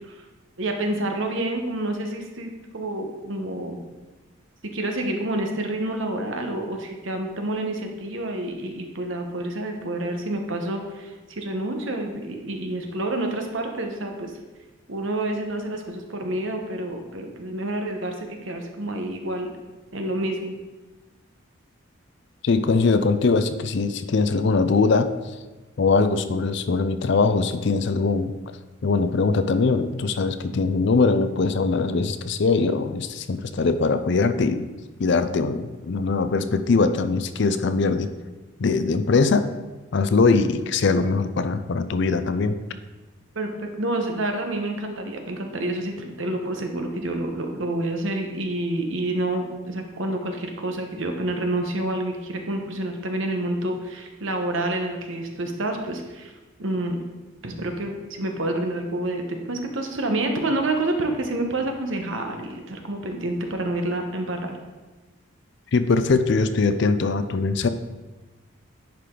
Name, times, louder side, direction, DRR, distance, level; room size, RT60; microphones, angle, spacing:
voice 1, 0.6-3.8 4.7-14.3 14.9-19.5 19.9-20.6 43.3-56.3 56.6-57.0 57.4-64.6, right 1 dB, 65° right, 4 dB, 1.1 m, -28 dB
voice 2, 22.4-25.1 25.8-28.3 28.8-34.7 35.0-38.1 38.6-39.5 39.9-42.6 65.7-67.7, left 4 dB, 55° left, 11 dB, 0.4 m, -21 dB
10.0 x 5.0 x 3.8 m, 1.2 s
head